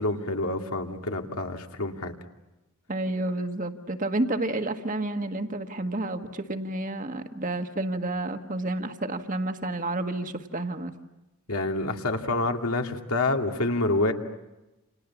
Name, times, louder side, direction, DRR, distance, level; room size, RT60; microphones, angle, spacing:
voice 1, 0.0-2.1 11.5-14.1, left 2 dB, 80° left, 3 dB, 2.4 m, -27 dB
voice 2, 2.9-10.9, right 2 dB, 35° right, 7 dB, 1.6 m, -30 dB
29.5 x 28.5 x 7.2 m, 1.0 s
head